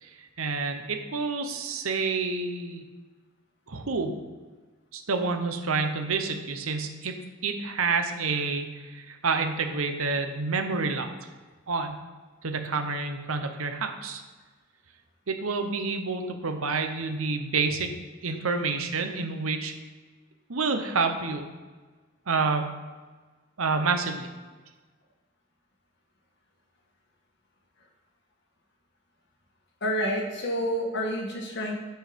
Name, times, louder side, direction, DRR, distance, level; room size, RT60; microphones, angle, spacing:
voice 1, 0.0-2.8 3.7-4.2 4.9-7.2 7.4-11.1 11.7-12.0 12.4-14.2 15.3-17.9 18.2-19.8 20.5-21.4 22.3-22.7 23.6-24.3, right 4 dB, 80° right, 6 dB, 0.9 m, -28 dB
voice 2, 29.8-31.7, equal, 55° left, -1 dB, 1.8 m, -29 dB
9.1 x 4.6 x 5.2 m, 1.3 s
head